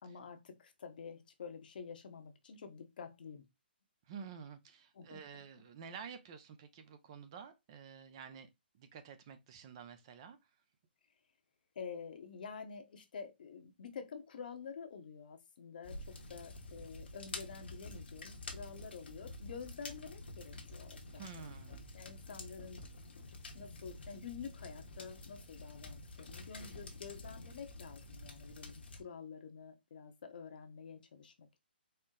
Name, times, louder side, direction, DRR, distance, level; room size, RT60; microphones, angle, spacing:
voice 1, 0.0-3.4 4.9-5.2 11.7-21.5 21.9-22.8 23.5-31.6, left 6 dB, 55° left, 0.9 m, -49 dB
voice 2, 4.1-8.5 8.7-10.4 21.1-21.8, right 6 dB, 30° right, 0.5 m, -50 dB
sound 1, 15.8-29.0, left 2 dB, 75° left, 1.1 m, -49 dB
4.3 x 2.0 x 3.7 m
hypercardioid pair, 160°, 6 cm